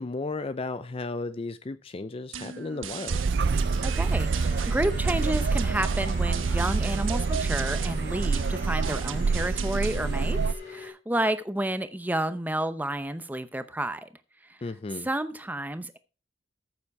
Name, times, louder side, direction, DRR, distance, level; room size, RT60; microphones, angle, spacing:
voice 1, 0.0-3.2 14.6-15.1, left 3 dB, 30° left, 0.4 m, -34 dB
sound 1, 2.3-10.3, right 8 dB, 85° right, 1.2 m, -39 dB
sound 2, 3.1-10.5, right 4 dB, 55° right, 0.4 m, -27 dB
sound 3, 3.6-10.9, left 2 dB, 65° left, 7.2 m, -44 dB
voice 2, 3.8-10.4 10.7-14.1 15.0-16.0, right 1 dB, 10° right, 0.7 m, -30 dB
14.0 x 7.3 x 4.7 m
head